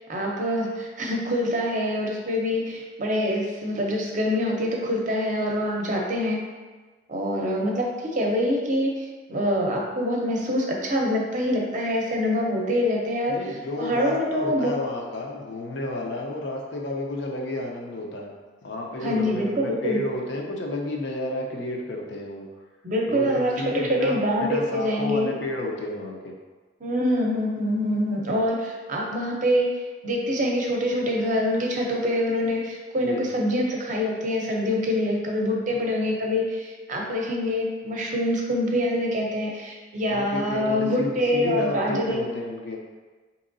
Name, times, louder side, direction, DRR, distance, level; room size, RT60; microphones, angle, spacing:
voice 1, 0.0-6.4 7.1-13.4 13.8-14.7 19.0-20.0 22.8-25.3 26.8-29.7 30.0-42.2, equal, 40° right, -1 dB, 0.6 m, -25 dB
voice 2, 13.3-18.3 18.6-22.5 23.1-26.4 33.0-33.3 35.7-35.9 40.1-42.8, left 1 dB, 65° left, 0 dB, 0.6 m, -31 dB
4.5 x 2.9 x 2.6 m, 1.3 s
head